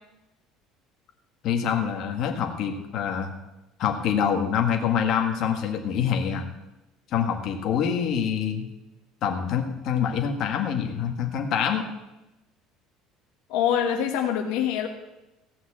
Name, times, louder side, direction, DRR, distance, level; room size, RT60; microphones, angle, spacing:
voice 1, 1.4-3.3 3.8-6.4 7.1-8.7 9.2-11.8, left 8 dB, 50° left, 3 dB, 1.7 m, -25 dB
voice 2, 13.5-14.9, left 9 dB, 75° left, 3 dB, 1.3 m, -24 dB
16.0 x 5.8 x 8.6 m, 0.99 s
cardioid pair, 160°, 0 cm